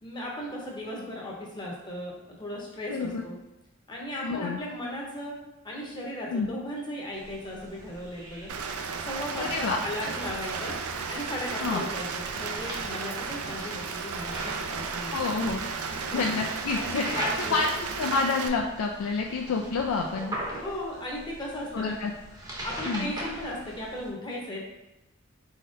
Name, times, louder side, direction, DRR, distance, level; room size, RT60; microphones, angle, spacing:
voice 1, 0.0-3.3 3.9-5.4 5.6-8.5 9.0-10.8 11.1-15.2 15.8-16.2 16.7-17.7 20.6-22.0 22.6-24.7, left 1 dB, 20° left, -3 dB, 0.8 m, -36 dB
voice 2, 2.9-3.2 4.2-4.6 6.3-6.5 9.3-9.8 11.6-11.8 15.1-15.8 16.1-17.2 17.5-17.7 18.0-20.4 21.7-22.1 22.9-23.1, left 4 dB, 75° left, 2 dB, 0.4 m, -28 dB
sound 1, 7.1-24.1, right 1 dB, 15° right, 0.7 m, -41 dB
Rain, 8.5-18.5, right 5 dB, 90° right, 0.4 m, -34 dB
4.2 x 4.0 x 2.5 m, 0.93 s
head